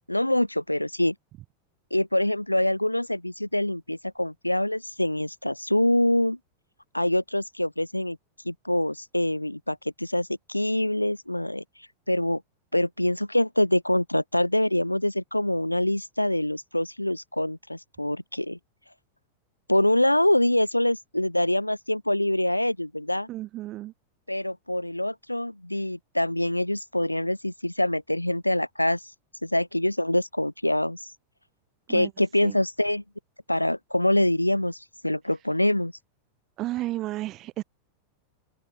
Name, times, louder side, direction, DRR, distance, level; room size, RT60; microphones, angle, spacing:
voice 1, 0.1-1.1 1.9-6.4 6.9-8.2 8.4-11.6 12.1-12.4 12.7-18.6 19.7-23.3 24.3-29.0 29.4-31.1 31.9-33.0 33.5-35.9, left 1 dB, 85° left, 4.8 m, -25 dB
voice 2, 23.3-23.9 31.9-32.1 32.4-32.5 36.6-37.6, right 16 dB, 35° right, 2.5 m, -32 dB
open air
figure-of-eight pair, 90°, 0 cm